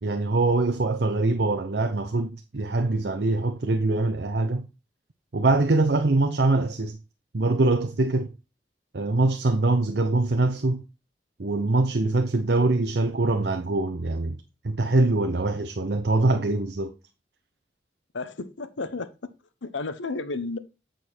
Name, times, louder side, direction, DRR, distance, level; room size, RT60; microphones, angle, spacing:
voice 1, 0.0-4.7 5.3-7.0 7.3-8.3 8.9-10.8 11.4-14.4 14.6-16.9, right 2 dB, 65° right, 0.7 m, -23 dB
voice 2, 18.1-19.1 19.6-20.6, left 3 dB, 90° left, 0.9 m, -32 dB
8.7 x 5.2 x 4.5 m
head